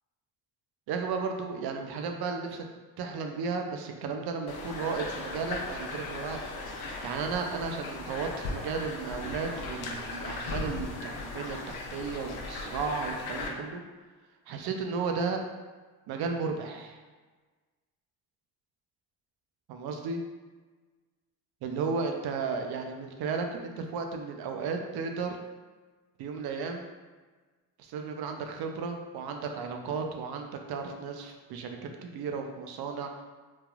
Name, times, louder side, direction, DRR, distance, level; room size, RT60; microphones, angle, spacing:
voice 1, 0.9-2.6 3.0-6.4 7.0-13.8 14.5-15.4 16.1-17.0 19.7-20.2 21.6-25.4 26.2-26.9 27.8-33.2, right 5 dB, 65° right, 4 dB, 0.5 m, -34 dB
sound 1, 4.5-13.5, left 3 dB, 70° left, 0.6 m, -37 dB
3.3 x 2.3 x 2.3 m, 1.3 s
supercardioid pair, 70°, 41 cm